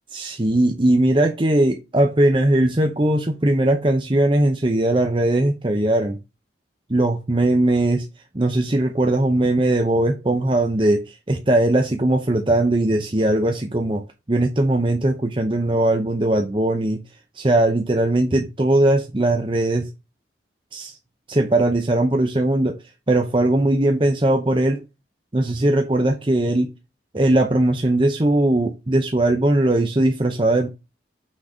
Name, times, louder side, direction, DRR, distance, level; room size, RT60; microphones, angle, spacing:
voice 1, 0.1-6.2 6.9-8.1 8.3-17.0 17.4-19.9 20.7-21.0 21.3-22.8 23.1-24.8 25.3-26.7 27.1-30.7, right 1 dB, 25° right, 0.7 m, -19 dB
6.2 x 3.9 x 5.0 m
head